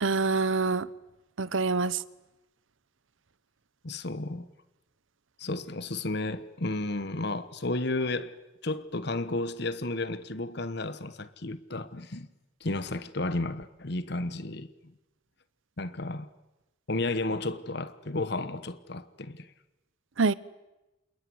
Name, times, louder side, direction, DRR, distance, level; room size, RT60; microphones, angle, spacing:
voice 1, 0.0-0.9 1.4-2.0 20.2-20.3, right 4 dB, 70° right, 0.9 m, -25 dB
voice 2, 3.8-4.5 5.4-8.3 8.6-12.3 12.6-14.7 15.8-16.3 16.9-19.5, left 2 dB, 55° left, 1.2 m, -32 dB
27.5 x 21.5 x 9.5 m
head